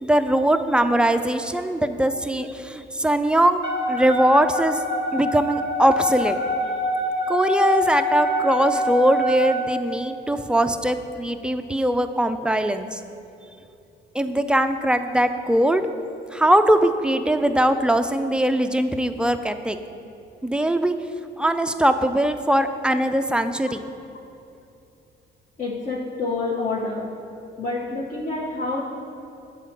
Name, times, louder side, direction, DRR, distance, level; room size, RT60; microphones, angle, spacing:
voice 1, 0.0-4.8 5.1-6.4 7.3-13.0 14.1-15.8 16.3-19.8 20.4-20.9 21.4-23.9, right 1 dB, 5° right, 8 dB, 0.3 m, -21 dB
Wind instrument woodwind instrument, 3.6-9.7, left 1 dB, 60° left, 1.5 m, -25 dB
voice 2, 25.6-27.1 27.6-28.8, left 3 dB, 40° left, -4 dB, 0.8 m, -27 dB
7.4 x 4.1 x 5.8 m, 2.7 s
cardioid pair, 90°, 20 cm